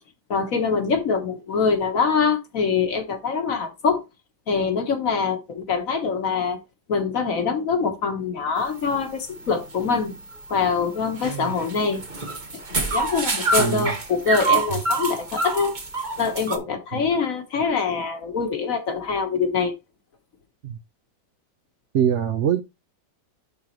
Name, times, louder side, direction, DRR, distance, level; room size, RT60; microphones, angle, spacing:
voice 1, 0.3-4.0 4.5-6.6 6.9-10.2 10.5-12.0 12.7-15.7 16.2-19.7, left 5 dB, 50° left, 1.4 m, -24 dB
sound 1, 8.6-16.6, right 3 dB, 30° right, 1.0 m, -28 dB
voice 2, 13.6-13.9 16.9-17.0 20.6-20.8 21.9-22.6, right 9 dB, 65° right, 0.7 m, -23 dB
11.0 x 3.8 x 2.9 m
omnidirectional pair, 2.0 m